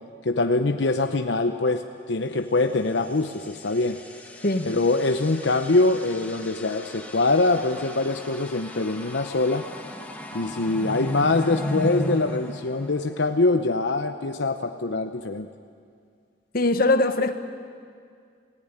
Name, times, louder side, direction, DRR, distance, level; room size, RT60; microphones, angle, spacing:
voice 1, 0.2-4.0 4.6-9.7 10.3-15.5, left 2 dB, 75° left, 7 dB, 0.9 m, -23 dB
sound 1, 2.8-13.5, equal, 10° left, 2.2 m, -36 dB
voice 2, 16.5-17.4, left 2 dB, 55° left, 9 dB, 1.4 m, -21 dB
27.5 x 17.5 x 9.8 m, 2.2 s
head